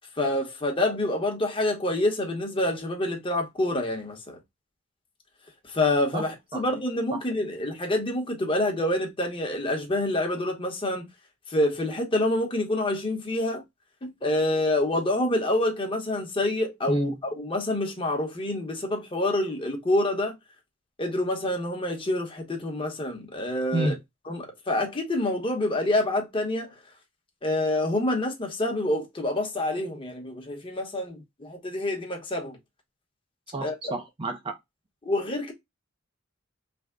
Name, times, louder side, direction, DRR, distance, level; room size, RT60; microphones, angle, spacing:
voice 1, 0.2-4.4 5.7-11.0 11.5-13.6 14.0-20.3 21.0-23.9 24.3-26.7 27.4-32.6 33.6-33.9 35.0-35.5, left 1 dB, 25° left, 0.9 m, -27 dB
voice 2, 6.1-6.6 7.1-7.2 16.9-17.1 23.7-24.0 33.5-34.6, right 1 dB, 25° right, 0.4 m, -30 dB
3.4 x 2.0 x 3.5 m
head